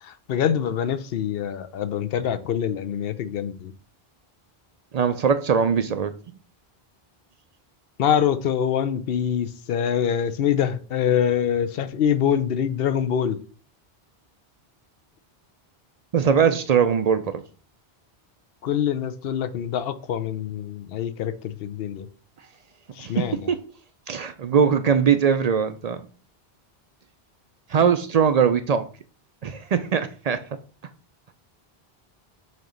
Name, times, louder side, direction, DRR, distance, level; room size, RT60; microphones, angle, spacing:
voice 1, 0.0-3.7 8.0-13.4 18.6-22.1 23.0-23.5, left 9 dB, 70° left, 0.8 m, -25 dB
voice 2, 4.9-6.1 16.1-17.4 23.0-23.6 24.1-26.0 27.7-28.9 29.4-30.4, right 7 dB, 55° right, 0.4 m, -21 dB
6.2 x 3.0 x 5.1 m
omnidirectional pair, 1.0 m